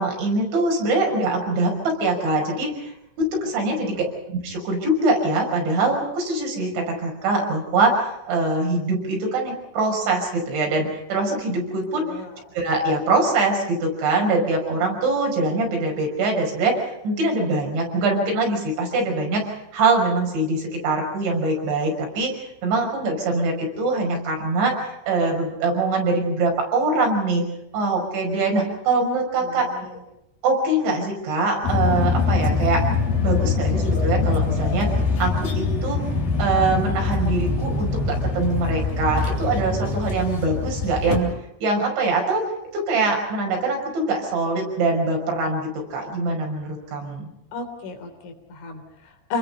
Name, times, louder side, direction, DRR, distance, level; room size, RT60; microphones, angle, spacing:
voice 1, 0.0-2.9 3.3-12.1 12.5-27.4 27.7-29.9 30.4-32.8 33.2-34.9 35.2-36.0 36.4-41.3 41.6-42.4 42.7-47.3, right 2 dB, 65° right, 1 dB, 7.7 m, -23 dB
voice 2, 3.7-4.1 12.0-12.5 29.4-30.0 47.5-49.4, left 3 dB, 70° left, 4 dB, 5.9 m, -34 dB
sound 1, 31.6-41.2, left 4 dB, 50° left, 4.9 m, -23 dB
28.5 x 21.5 x 5.6 m, 0.84 s
omnidirectional pair, 5.6 m